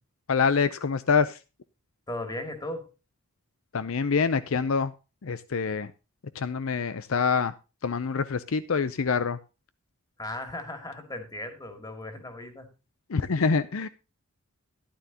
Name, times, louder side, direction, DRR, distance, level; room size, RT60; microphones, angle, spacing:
voice 1, 0.3-1.4 3.7-4.9 5.2-5.9 6.4-7.5 7.8-9.4 13.1-13.9, left 5 dB, 65° left, 14 dB, 0.6 m, -25 dB
voice 2, 2.1-2.9 10.2-12.7, left 1 dB, 20° left, 6 dB, 2.3 m, -37 dB
13.0 x 11.5 x 2.8 m, 0.30 s
head